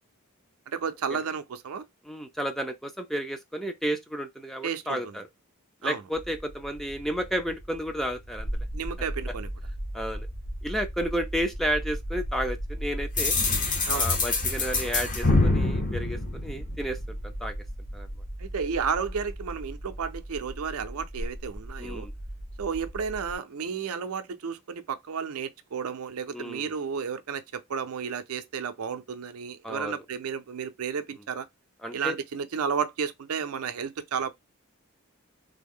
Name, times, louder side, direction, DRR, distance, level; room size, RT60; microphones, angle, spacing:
voice 1, 0.7-1.8 4.6-5.2 5.8-6.0 8.7-9.5 13.9-14.1 18.4-22.1 22.6-31.5 31.9-34.3, right 6 dB, 80° right, 0.5 m, -32 dB
voice 2, 2.1-5.3 5.8-8.5 9.9-10.3 10.6-13.4 13.9-17.6 17.9-18.1 21.8-22.1 26.3-26.7 29.6-30.0 31.8-32.2, equal, ahead, 0.4 m, -32 dB
sound 1, 6.1-23.4, equal, 60° left, 1.0 m, -37 dB
sound 2, 13.2-17.0, left 3 dB, 35° left, 0.8 m, -25 dB
3.4 x 2.0 x 3.5 m
head